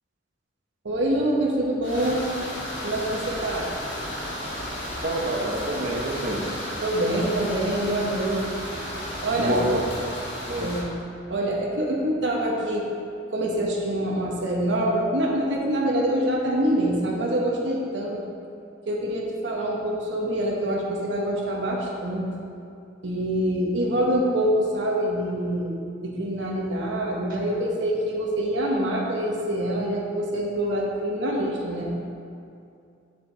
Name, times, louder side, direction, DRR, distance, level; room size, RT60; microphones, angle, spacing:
voice 1, 0.8-2.3 2.8-3.7 6.8-8.4 9.2-9.6 10.6-10.9 11.3-12.9 13.3-18.2 18.9-22.3 23.0-31.9, right 1 dB, 75° right, -2 dB, 1.0 m, -25 dB
sound 1, 1.8-10.8, equal, 70° left, 1.6 m, -33 dB
voice 2, 5.0-6.4 9.4-9.9 10.5-10.7, right 1 dB, 50° right, -1 dB, 1.0 m, -27 dB
6.7 x 6.7 x 3.9 m, 2.5 s
head